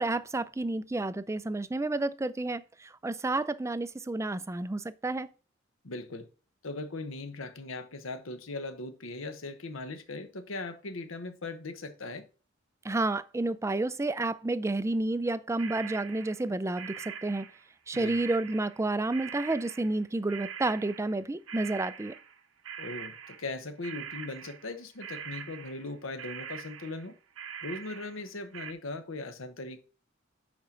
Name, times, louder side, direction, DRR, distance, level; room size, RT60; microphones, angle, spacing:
voice 1, 0.0-5.3 12.8-17.5 17.9-22.1, right 2 dB, 15° right, 0.4 m, -30 dB
voice 2, 5.8-6.2 6.6-12.2 17.9-18.2 22.8-27.1 27.6-29.8, left 2 dB, 75° left, 1.1 m, -39 dB
sound 1, 15.6-22.4 22.6-24.7 25.0-25.9 26.2-28.7, right 8 dB, 85° right, 1.1 m, -43 dB
10.5 x 4.4 x 3.8 m
head